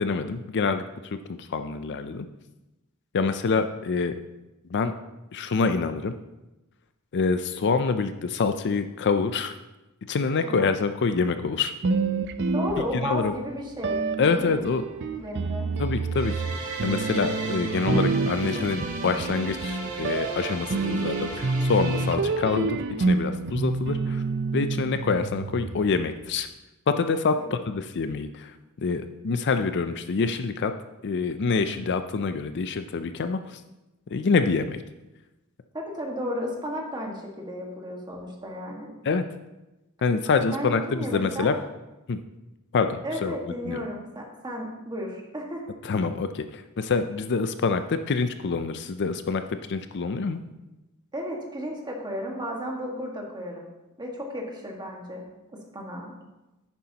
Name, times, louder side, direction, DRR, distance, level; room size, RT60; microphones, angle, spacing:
voice 1, 0.0-2.3 3.1-4.1 4.7-4.9 5.3-6.1 7.1-9.5 10.1-11.7 12.9-13.3 14.2-14.8 15.8-16.4 16.8-24.2 24.5-26.5 26.9-30.7 31.0-33.6 34.1-34.8 39.0-39.2 40.0-41.5 42.1-42.2 42.7-43.4 43.6-43.8 45.8-50.4, left 4 dB, 55° left, 9 dB, 0.5 m, -26 dB
sound 1, 11.8-13.3 13.8-26.0, right 3 dB, 55° right, 0.5 m, -28 dB
voice 2, 12.5-14.0 14.3-14.6 15.2-15.7 27.4-27.6 35.7-38.9 40.5-41.5 43.0-45.7 51.1-53.7 54.0-55.2 55.5-56.1, equal, 20° right, -1 dB, 1.7 m, -33 dB
sound 2, 16.1-22.1, right 3 dB, 70° right, 2.2 m, -35 dB
10.5 x 9.2 x 2.9 m, 1.0 s
head